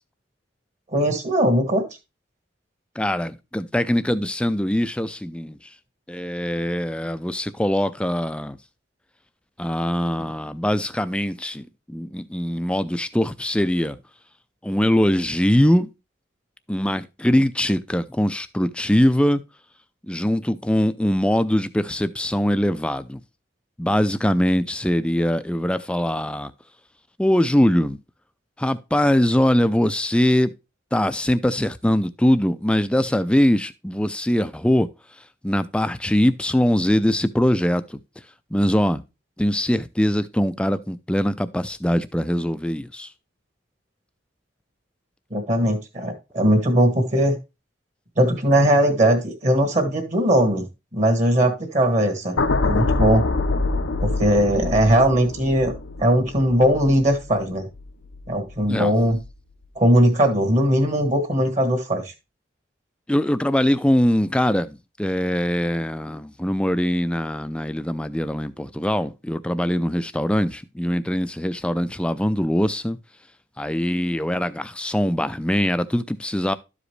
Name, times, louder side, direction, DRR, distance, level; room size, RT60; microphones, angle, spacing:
voice 1, 0.9-1.8 45.3-47.3 48.2-50.6 50.9-53.2 54.0-55.7 56.0-57.6 58.3-59.2 59.7-62.1, equal, 40° right, 1.5 m, -19 dB
voice 2, 3.0-5.6 6.1-8.6 9.6-14.0 14.6-15.9 16.7-19.4 20.1-23.2 23.8-26.5 27.2-28.0 28.6-30.5 30.9-34.9 35.4-38.0 38.5-39.0 39.4-43.1 58.7-58.9 63.1-73.0 73.6-76.5, equal, 5° left, 0.4 m, -22 dB
sound 1, 52.4-58.7 59.0-59.3, left 3 dB, 85° left, 0.6 m, -26 dB
12.5 x 5.0 x 3.2 m
head